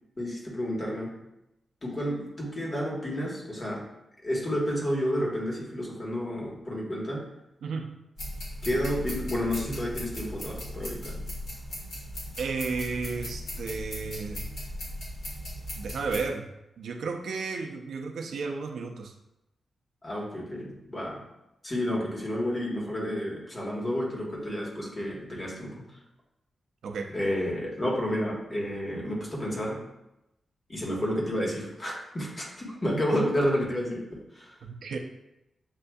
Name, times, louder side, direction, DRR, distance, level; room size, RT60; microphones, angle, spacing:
voice 1, 0.2-1.1 1.8-3.8 4.2-7.2 8.6-11.2 20.0-21.2 21.6-25.8 27.1-29.8 30.7-34.6, equal, 30° left, -3 dB, 1.3 m, -30 dB
voice 2, 7.6-7.9 12.4-14.5 15.8-16.4 16.8-19.1 26.8-27.1 34.6-35.0, right 4 dB, 90° right, 3 dB, 0.5 m, -33 dB
sound 1, 8.2-16.2, equal, 85° left, 1.5 m, -37 dB
7.4 x 2.6 x 2.3 m, 0.90 s
wide cardioid pair, 100°, 0 cm